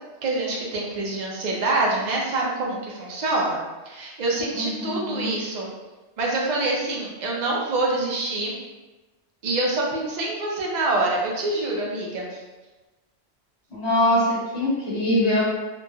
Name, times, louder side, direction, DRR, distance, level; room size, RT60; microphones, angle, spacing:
voice 1, 0.2-3.6 3.9-5.7 6.2-8.5 9.4-12.4, right 2 dB, 55° right, -3 dB, 0.5 m, -26 dB
voice 2, 4.5-5.3 13.7-15.4, left 1 dB, 65° left, -8 dB, 1.2 m, -23 dB
2.8 x 2.3 x 2.3 m, 1.2 s
omnidirectional pair, 1.2 m